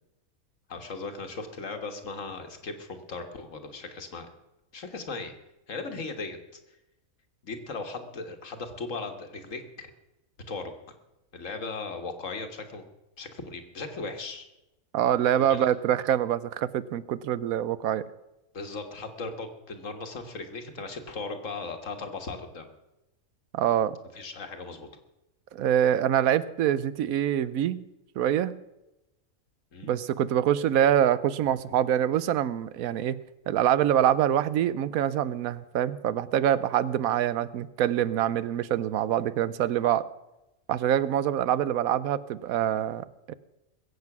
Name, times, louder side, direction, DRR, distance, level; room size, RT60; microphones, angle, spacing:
voice 1, 0.7-4.3 4.7-5.3 5.7-6.4 7.4-9.9 10.5-10.7 11.3-12.8 13.2-14.5 15.4-15.7 18.5-22.7 24.1-24.9 29.7-29.9, left 3 dB, 65° left, 6 dB, 1.8 m, -37 dB
voice 2, 14.9-18.0 23.5-24.0 25.5-27.8 28.2-28.6 29.8-33.2 33.5-40.1 40.7-43.3, right 10 dB, 80° right, 17 dB, 1.1 m, -25 dB
21.5 x 8.1 x 6.0 m, 0.95 s
omnidirectional pair, 1.5 m